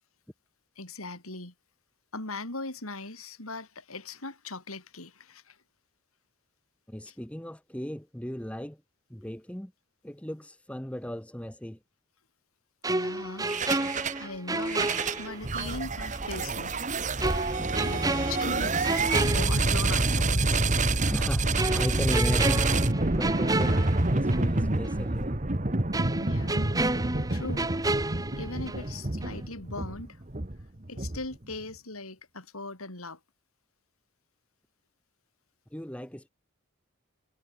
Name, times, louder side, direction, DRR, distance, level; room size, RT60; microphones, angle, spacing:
voice 1, 0.8-1.5 2.1-5.6 7.1-7.2 12.9-16.9 17.3-20.6 23.5-23.8 26.2-26.8 27.3-27.7 28.3-30.2 30.9-33.2, left 2 dB, 90° left, 5.8 m, -40 dB
voice 2, 6.9-8.8 9.1-9.7 10.0-11.8 17.6-18.1 21.0-22.7 23.1-23.7 24.1-25.4 35.7-36.3, equal, 5° left, 1.0 m, -36 dB
sound 1, 12.8-15.8 16.1-16.3 17.2-20.2 20.5-20.7 21.6-24.6 24.9-25.0 25.9-29.0 29.2-29.5, right 2 dB, 15° right, 1.7 m, -31 dB
sound 2, 13.4-14.2 14.6-31.5, right 2 dB, 35° right, 1.4 m, -27 dB
head